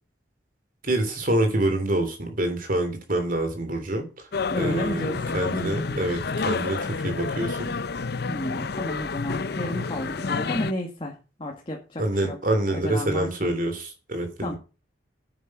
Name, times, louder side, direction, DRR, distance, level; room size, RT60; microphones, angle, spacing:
voice 1, 0.8-4.3 4.5-7.7 12.0-14.6, right 1 dB, 50° right, 6 dB, 3.2 m, -26 dB
sound 1, 4.3-10.7, left 4 dB, 60° left, 0.7 m, -29 dB
voice 2, 4.5-6.1 8.3-12.4 12.7-13.5 14.4-14.6, left 1 dB, 30° left, 0 dB, 2.0 m, -32 dB
9.6 x 9.1 x 5.9 m, 0.33 s
head